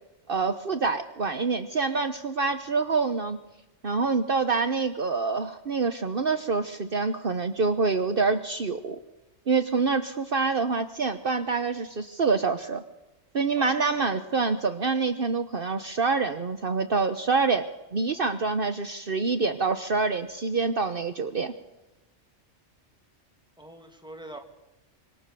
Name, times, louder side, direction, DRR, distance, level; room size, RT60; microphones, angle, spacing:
voice 1, 0.3-3.4 3.8-9.0 9.5-12.8 13.3-21.5, right 4 dB, 55° right, 8 dB, 1.3 m, -26 dB
voice 2, 13.6-14.2 23.6-24.4, right 1 dB, 5° right, 3 dB, 2.8 m, -44 dB
26.0 x 24.5 x 6.9 m, 0.99 s
omnidirectional pair, 1.2 m